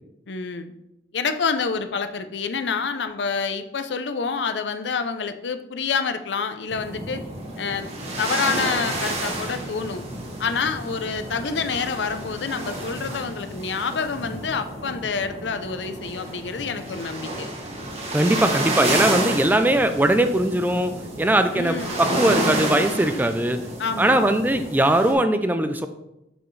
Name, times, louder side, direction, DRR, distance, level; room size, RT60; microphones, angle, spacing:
voice 1, 0.3-0.7 1.1-7.2 7.6-7.9 8.2-10.1 10.4-17.5 21.5-22.0 23.8-24.2, left 5 dB, 85° left, 9 dB, 0.6 m, -27 dB
sound 1, 6.7-25.1, right 1 dB, 35° right, 1.4 m, -30 dB
voice 2, 18.1-20.9 21.2-23.6 24.0-25.9, right 1 dB, 10° right, 9 dB, 0.4 m, -20 dB
7.0 x 6.0 x 3.2 m, 0.88 s
head